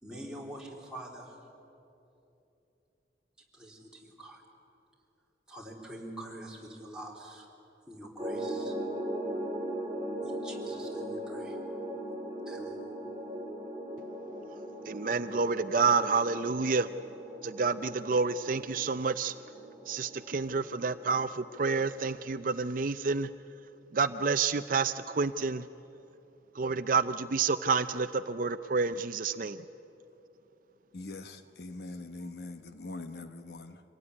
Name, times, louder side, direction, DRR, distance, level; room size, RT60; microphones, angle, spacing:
voice 1, 0.0-1.4 3.5-4.4 5.5-7.5 7.9-8.7 10.2-11.6 12.5-12.8, right 1 dB, 5° right, -3 dB, 3.5 m, -45 dB
sound 1, 8.2-22.2, right 1 dB, 20° right, 2.0 m, -39 dB
voice 2, 14.9-16.9 17.4-19.3 19.9-23.3 23.9-25.6 26.6-29.6, right 4 dB, 50° right, 12 dB, 0.5 m, -29 dB
voice 3, 30.9-33.8, left 2 dB, 65° left, 9 dB, 1.0 m, -42 dB
25.5 x 18.0 x 9.8 m, 2.9 s
head